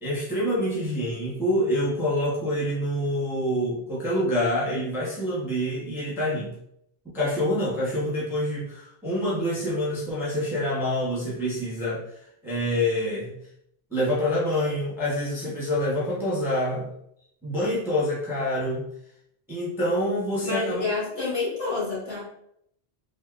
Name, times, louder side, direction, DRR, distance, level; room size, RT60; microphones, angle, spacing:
voice 1, 0.0-6.5 7.1-12.0 12.4-13.3 13.9-16.9 17.4-18.8 19.5-20.8, left 1 dB, ahead, -7 dB, 0.7 m, -26 dB
voice 2, 20.4-22.2, left 3 dB, 55° left, -8 dB, 1.6 m, -28 dB
3.5 x 2.4 x 2.3 m, 0.72 s
omnidirectional pair, 1.1 m